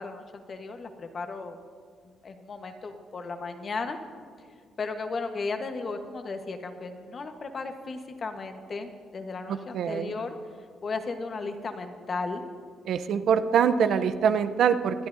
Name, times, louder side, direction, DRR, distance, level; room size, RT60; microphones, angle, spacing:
voice 1, 0.0-1.6 2.0-4.0 4.8-10.4 10.8-12.4, left 4 dB, 45° left, 6 dB, 1.1 m, -35 dB
voice 2, 9.5-10.1 12.9-15.1, right 7 dB, 70° right, 11 dB, 0.6 m, -24 dB
25.0 x 9.6 x 2.7 m, 2.1 s
cardioid pair, 90°, 0 cm